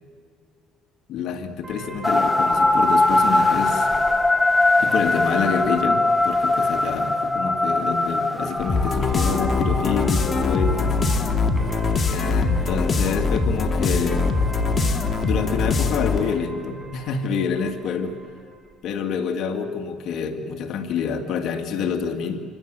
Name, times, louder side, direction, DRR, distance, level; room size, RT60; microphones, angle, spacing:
voice 1, 1.1-3.9 4.8-11.0 12.1-14.3 15.2-18.2 18.8-22.4, left 6 dB, 60° left, 5 dB, 2.3 m, -27 dB
sound 1, 1.6-18.7, right 2 dB, 15° right, 6.0 m, -40 dB
sound 2, 2.0-11.5, left 2 dB, 10° left, 1.3 m, -21 dB
sound 3, 8.7-16.4, left 4 dB, 30° left, 2.0 m, -22 dB
27.0 x 24.5 x 7.9 m, 2.1 s
cardioid pair, 120°, 0 cm